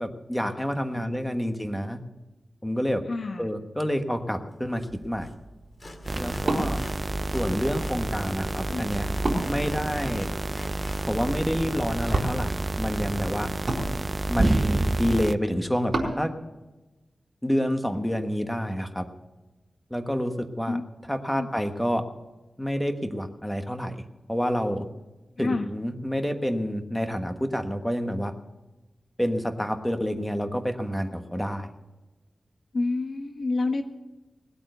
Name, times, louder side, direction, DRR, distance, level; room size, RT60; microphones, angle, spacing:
voice 1, 0.0-2.0 2.6-3.0 3.4-5.3 6.2-6.8 7.3-9.1 9.5-10.3 11.1-13.5 14.3-16.3 17.4-19.0 19.9-20.8 21.1-22.0 22.6-24.0 24.3-24.8 25.4-28.3 29.2-31.7, equal, 5° left, 6 dB, 1.4 m, -28 dB
voice 2, 0.9-1.5 3.1-3.5 8.7-8.9 20.7-20.8 21.3-21.5 25.4-25.7 32.7-33.8, left 3 dB, 60° left, 7 dB, 1.1 m, -29 dB
Wood, 4.7-16.2, right 2 dB, 50° right, 4.4 m, -35 dB
Sawing, 4.8-4.9 5.2-5.3 5.8-8.0 8.3-11.1, left 2 dB, 40° left, 2.0 m, -47 dB
sound 1, 6.1-15.4, right 2 dB, 30° right, 0.4 m, -29 dB
19.5 x 8.7 x 6.6 m, 1.1 s
wide cardioid pair, 95°, 0 cm